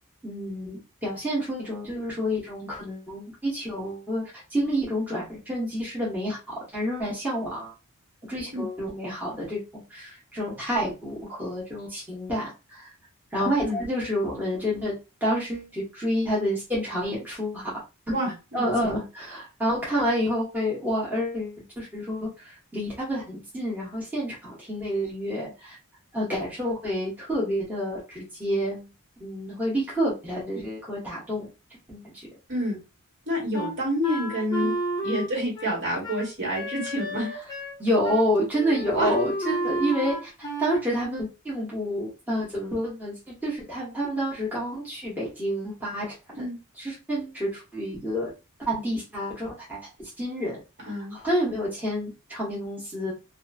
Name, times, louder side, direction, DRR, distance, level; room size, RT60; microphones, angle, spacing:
voice 1, 0.2-4.2 4.5-7.7 8.3-9.6 9.9-12.9 13.3-14.9 15.2-17.7 18.5-25.8 26.1-28.9 29.2-31.5 31.9-32.3 34.6-34.7 37.8-46.5 46.8-48.3 48.6-53.1, equal, 10° right, -6 dB, 1.0 m, -29 dB
voice 2, 18.1-18.9 32.5-32.8 33.3-34.7 35.0-37.3 38.9-39.1 46.3-46.6 50.8-51.1, equal, 55° right, -2 dB, 1.6 m, -28 dB
Wind instrument woodwind instrument, 33.5-37.8 38.0-38.2 38.5-40.8, right 1 dB, 20° left, 0.6 m, -31 dB
2.8 x 2.4 x 2.6 m, 0.28 s
head